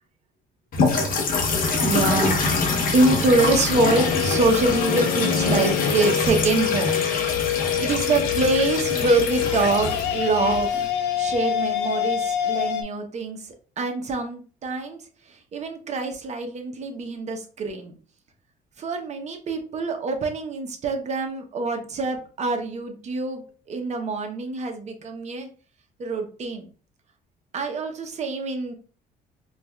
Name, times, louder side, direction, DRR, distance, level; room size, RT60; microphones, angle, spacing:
sound 1, 0.7-10.9, left 3 dB, 55° left, 0.8 m, -25 dB
voice 1, 1.4-2.5 2.9-6.9 7.3-10.9 11.2-15.0 15.5-17.9 18.8-23.4 23.7-25.5 26.0-26.7 27.5-28.7, right 3 dB, 45° right, 5 dB, 0.8 m, -25 dB
sound 2, 3.7-12.8, left 10 dB, 80° left, 0.4 m, -26 dB
4.7 x 2.3 x 2.2 m, 0.39 s
cardioid pair, 110°, 17 cm